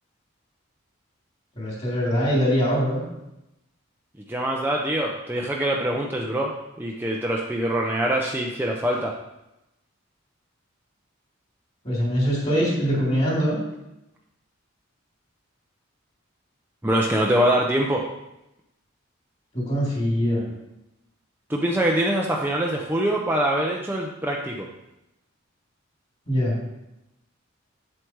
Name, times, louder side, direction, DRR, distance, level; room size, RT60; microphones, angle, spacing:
voice 1, 1.6-3.0 11.8-13.6 19.5-20.4 26.3-26.5, equal, 30° left, -3 dB, 3.5 m, -23 dB
voice 2, 4.3-6.5 6.8-9.2 16.8-18.0 21.5-24.7, right 1 dB, 10° right, -1 dB, 0.6 m, -24 dB
8.0 x 7.7 x 4.7 m, 0.91 s
head